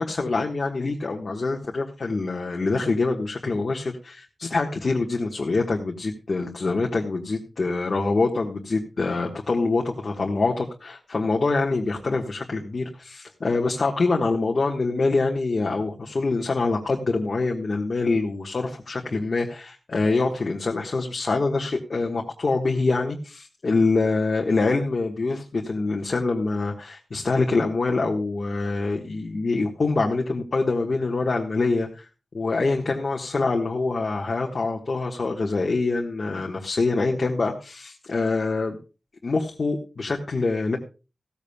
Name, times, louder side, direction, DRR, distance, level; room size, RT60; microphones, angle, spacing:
voice 1, 0.0-32.1 32.3-38.8 39.2-40.8, left 3 dB, 45° left, 0 dB, 1.4 m, -25 dB
16.0 x 14.0 x 2.3 m, 0.32 s
wide cardioid pair, 135°, 0 cm